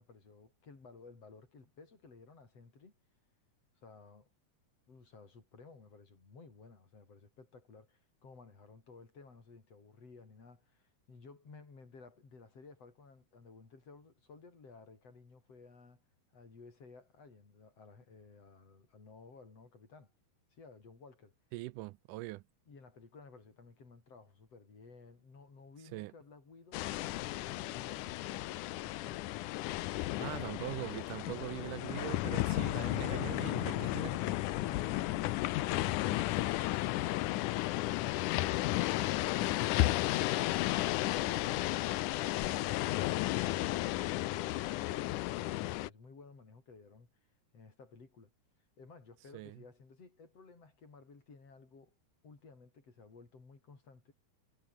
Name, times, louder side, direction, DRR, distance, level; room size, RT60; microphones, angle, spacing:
voice 1, 0.0-2.9 3.8-4.3 4.9-16.0 16.3-20.1 20.5-21.3 22.7-28.1 30.0-30.7 42.3-47.1 47.5-48.3 48.8-51.9 52.2-54.1, left 4 dB, 45° left, 6.0 m, -56 dB
voice 2, 21.5-22.4 25.9-26.1 30.2-34.3 49.3-49.6, right 20 dB, 80° right, 2.0 m, -42 dB
sound 1, 26.7-45.9, left 17 dB, 75° left, 2.2 m, -33 dB
omnidirectional pair, 3.8 m